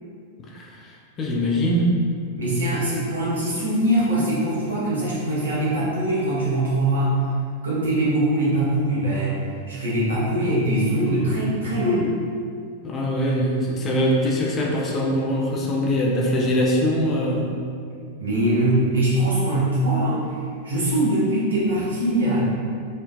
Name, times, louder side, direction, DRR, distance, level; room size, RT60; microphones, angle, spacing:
voice 1, 0.4-1.9 12.8-17.6, equal, 25° left, -2 dB, 0.4 m, -23 dB
voice 2, 2.4-7.2 7.6-9.4 9.7-12.1 18.2-20.2 20.6-22.4, right 1 dB, 70° right, -8 dB, 0.7 m, -22 dB
2.5 x 2.1 x 2.4 m, 2.3 s
figure-of-eight pair, 90°, 0 cm